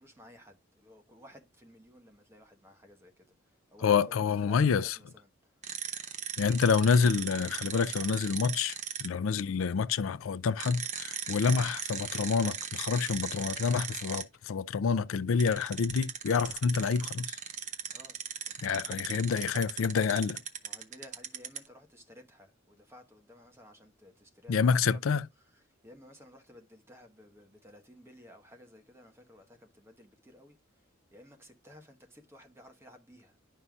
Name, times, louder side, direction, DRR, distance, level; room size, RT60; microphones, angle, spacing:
voice 1, 0.0-3.3 3.7-5.3 17.9-18.2 18.5-19.0 20.6-25.2 25.8-30.6 31.1-33.3, left 1 dB, 15° right, 1.2 m, -55 dB
voice 2, 3.8-5.0 6.4-17.4 18.6-20.4 24.5-25.3, left 5 dB, 80° left, 0.4 m, -28 dB
sound 1, 5.6-9.1 10.6-14.2 15.4-21.7, right 8 dB, 35° right, 0.9 m, -38 dB
11.0 x 5.5 x 2.3 m
head